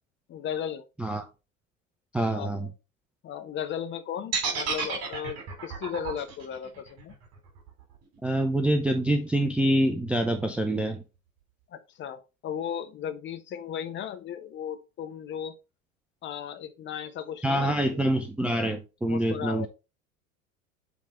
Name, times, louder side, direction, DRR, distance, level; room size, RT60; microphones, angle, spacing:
voice 1, 0.3-0.8 2.3-2.7 3.2-7.1 11.7-15.5 16.2-18.1 19.1-19.7, left 9 dB, 30° left, 0.9 m, -36 dB
voice 2, 2.1-2.7 8.2-11.0 17.4-19.7, right 1 dB, 5° right, 0.5 m, -26 dB
sound 1, 4.3-8.4, right 6 dB, 40° right, 2.8 m, -32 dB
7.4 x 3.6 x 4.3 m
figure-of-eight pair, 75°, 41 cm